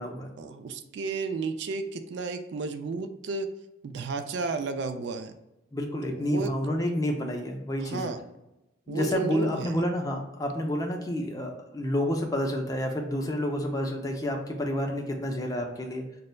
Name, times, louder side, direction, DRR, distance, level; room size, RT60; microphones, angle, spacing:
voice 1, 0.4-3.5 3.8-5.3 6.0-6.5 7.8-8.2 8.9-9.8, right 4 dB, 65° right, 8 dB, 0.3 m, -33 dB
voice 2, 5.7-8.1 8.9-16.0, equal, 20° left, 2 dB, 0.4 m, -29 dB
5.2 x 2.0 x 2.2 m, 0.93 s
head